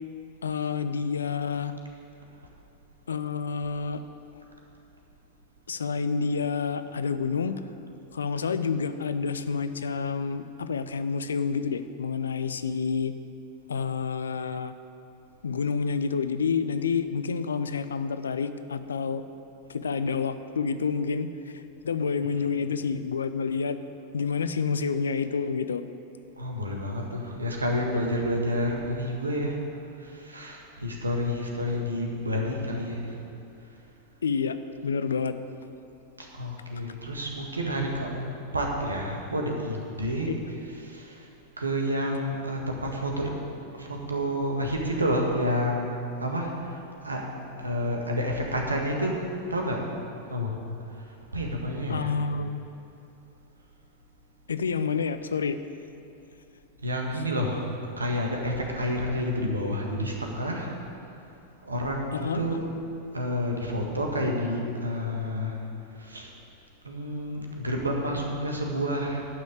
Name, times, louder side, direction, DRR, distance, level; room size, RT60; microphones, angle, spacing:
voice 1, 0.4-1.7 3.1-4.0 5.7-7.6 8.1-13.1 13.7-14.7 15.4-19.2 19.7-23.8 24.1-25.8 34.2-34.6 34.8-35.3 51.9-52.6 54.5-55.6 62.1-62.4, left 5 dB, 70° left, 11 dB, 0.5 m, -28 dB
voice 2, 26.4-29.6 30.0-33.2 36.2-40.3 40.8-41.3 41.6-43.3 43.7-45.9 46.2-47.2 47.6-49.2 49.5-49.9 50.3-50.6 51.0-52.1 56.8-57.6 58.0-60.7 61.6-62.7 63.1-65.6 65.9-66.3 66.8-69.3, equal, 80° right, 0 dB, 1.6 m, -29 dB
11.0 x 6.3 x 8.3 m, 2.7 s
figure-of-eight pair, 90°, 0 cm